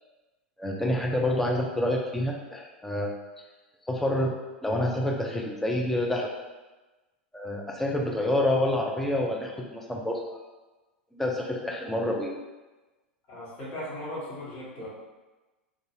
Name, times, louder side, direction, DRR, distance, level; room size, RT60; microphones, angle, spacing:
voice 1, 0.6-3.1 3.9-6.3 7.3-10.4 11.1-12.3, left 1 dB, 5° left, -1 dB, 0.4 m, -28 dB
voice 2, 13.3-14.9, left 1 dB, 40° left, -9 dB, 1.3 m, -37 dB
2.5 x 2.3 x 2.8 m, 1.2 s
figure-of-eight pair, 90°, 6 cm